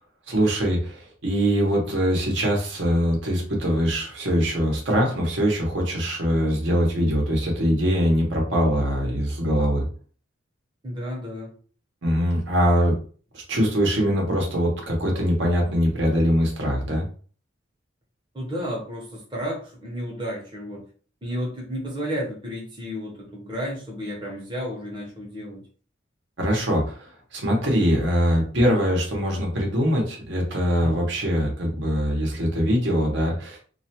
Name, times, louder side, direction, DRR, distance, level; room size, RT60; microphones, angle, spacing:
voice 1, 0.3-9.9 12.0-13.0 13.3-17.1 26.4-33.6, equal, 65° right, -1 dB, 0.8 m, -22 dB
voice 2, 10.8-11.5 18.3-20.8 21.2-25.6 30.8-31.1, equal, 25° right, -3 dB, 0.7 m, -32 dB
2.3 x 2.1 x 2.8 m, 0.41 s
head